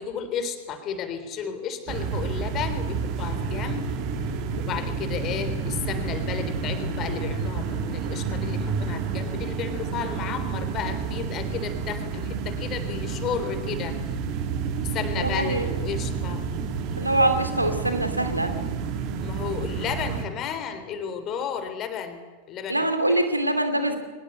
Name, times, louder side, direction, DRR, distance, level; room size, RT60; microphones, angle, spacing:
voice 1, 0.0-3.9 4.2-4.3 4.6-14.0 14.8-16.4 19.2-22.2 22.5-22.9, left 7 dB, 35° left, 9 dB, 3.4 m, -33 dB
sound 1, 1.9-20.3, right 5 dB, 40° right, 2.4 m, -30 dB
voice 2, 15.2-15.7 17.0-18.5 22.7-24.0, right 1 dB, 85° right, 8 dB, 2.6 m, -24 dB
23.0 x 20.0 x 8.2 m, 1.3 s
figure-of-eight pair, 90°, 0 cm